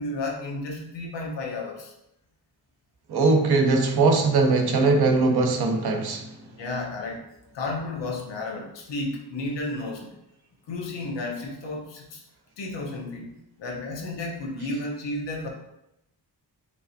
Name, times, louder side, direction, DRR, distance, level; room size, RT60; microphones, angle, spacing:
voice 1, 0.0-1.9 6.5-7.2 7.5-10.2 10.7-12.2 12.6-13.3 13.6-15.5, left 2 dB, 85° left, 0 dB, 1.0 m, -32 dB
voice 2, 3.1-6.3, right 3 dB, 65° right, 4 dB, 0.7 m, -21 dB
4.5 x 3.3 x 2.7 m, 0.84 s
wide cardioid pair, 150°, 42 cm